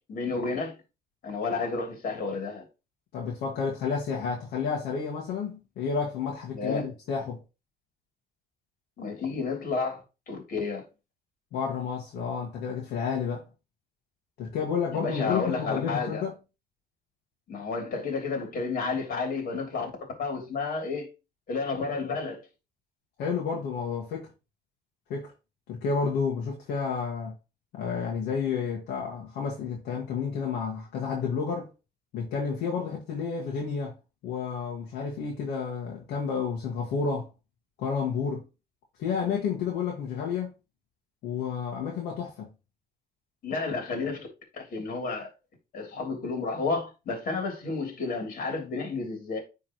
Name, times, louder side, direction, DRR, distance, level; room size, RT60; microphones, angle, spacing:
voice 1, 0.1-0.8 1.2-2.7 6.5-6.9 9.0-10.0 10.3-10.9 14.9-16.2 17.5-19.9 20.2-21.1 21.5-22.4 43.4-44.3 44.5-45.3 45.7-49.4, left 4 dB, 55° left, 3.1 m, -31 dB
voice 2, 3.1-7.4 11.5-13.4 14.4-16.4 23.2-24.3 25.1-25.3 25.7-27.3 27.7-31.7 32.1-33.9 34.2-37.3 37.8-38.4 39.0-40.5 41.2-42.5, left 6 dB, 80° left, 1.8 m, -30 dB
9.6 x 3.8 x 3.0 m
cardioid pair, 110°, 17 cm